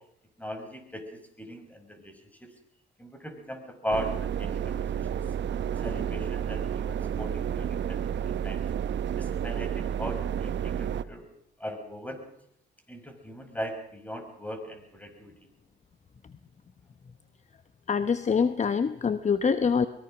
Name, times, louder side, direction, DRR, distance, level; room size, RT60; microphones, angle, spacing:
voice 1, 0.4-1.1 1.4-2.5 3.0-5.2 5.8-8.6 9.2-11.3 11.6-12.2 12.9-15.3, equal, 5° left, 6 dB, 5.2 m, -38 dB
sound 1, 3.9-11.0, right 9 dB, 65° right, 1.0 m, -31 dB
voice 2, 17.9-19.9, left 6 dB, 35° left, 11 dB, 1.1 m, -25 dB
23.0 x 21.5 x 6.2 m, 0.70 s
cardioid pair, 90°, 20 cm